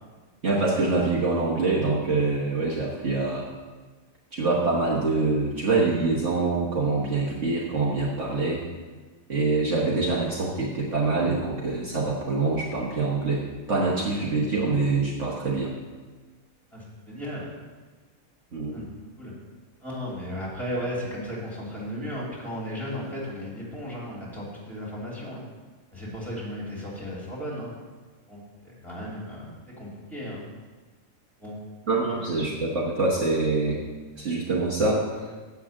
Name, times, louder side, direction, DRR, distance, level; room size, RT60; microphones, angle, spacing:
voice 1, 0.4-3.4 4.3-8.6 9.3-15.7 18.5-18.8 31.9-33.8 34.2-35.2, right 3 dB, 55° right, -4 dB, 1.5 m, -25 dB
voice 2, 16.7-17.5 18.7-18.8 19.2-19.3 19.8-25.4 25.9-27.7 28.3-29.5 29.8-30.4 31.4-31.6, equal, ahead, -6 dB, 3.1 m, -35 dB
7.6 x 6.1 x 7.5 m, 1.3 s
omnidirectional pair, 1.5 m